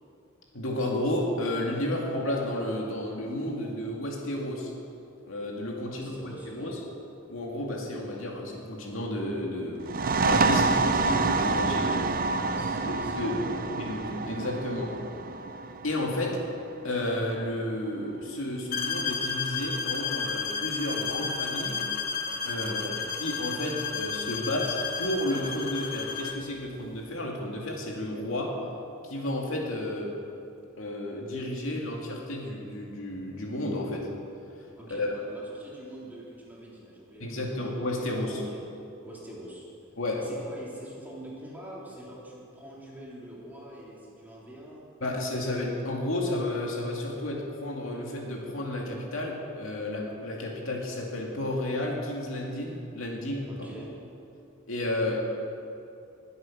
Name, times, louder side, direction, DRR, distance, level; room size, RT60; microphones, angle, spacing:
voice 1, 0.5-4.7 5.3-6.8 7.3-12.2 12.9-13.4 13.7-14.9 15.8-16.4 16.8-21.8 22.4-22.8 23.2-28.6 29.0-30.2 30.8-34.1 34.9-35.1 37.2-38.4 40.0-40.3 45.0-53.5 54.7-55.2, left 1 dB, 70° left, -1 dB, 2.4 m, -32 dB
voice 2, 5.9-6.8 12.2-13.8 22.6-23.0 34.8-38.0 38.3-38.6 39.0-39.7 40.2-44.8 53.5-54.0, right 1 dB, 10° right, -6 dB, 3.3 m, -44 dB
sound 1, 9.8-17.2, right 3 dB, 45° right, 0.6 m, -27 dB
sound 2, 18.7-26.5, left 5 dB, 45° left, 1.0 m, -32 dB
21.5 x 8.3 x 6.1 m, 2.7 s
head